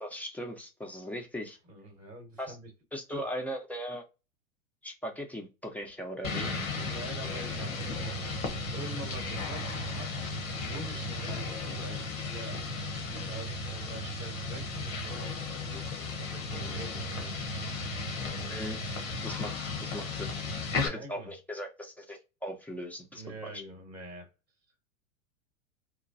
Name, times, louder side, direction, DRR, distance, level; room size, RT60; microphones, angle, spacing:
voice 1, 0.0-1.6 2.4-2.6 2.9-4.0 4.8-6.5 18.5-18.8 19.2-20.3 20.8-23.6, equal, 5° left, 0.5 m, -39 dB
voice 2, 1.7-2.7 3.1-3.2 6.8-8.0 8.7-12.6 13.3-17.3 19.4-19.6 20.3-21.3 23.1-24.3, right 1 dB, 15° right, 0.9 m, -45 dB
sound 1, 6.2-20.9, left 3 dB, 80° left, 1.1 m, -35 dB
3.0 x 2.2 x 2.6 m
hypercardioid pair, 100°, 40 cm